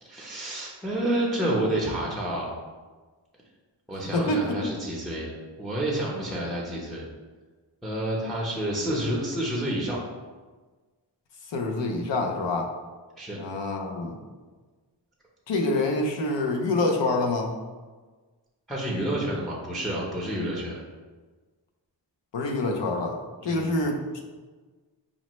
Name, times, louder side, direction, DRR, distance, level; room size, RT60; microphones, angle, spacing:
voice 1, 0.0-2.5 3.9-7.1 7.8-10.0 13.2-13.4 18.7-20.8 23.4-23.7, right 1 dB, ahead, -4 dB, 0.6 m, -29 dB
voice 2, 4.1-4.7 11.5-12.7 13.4-14.2 15.5-17.5 22.3-24.2, left 2 dB, 80° left, 2 dB, 0.6 m, -26 dB
5.2 x 2.1 x 3.0 m, 1.4 s
wide cardioid pair, 70°, 44 cm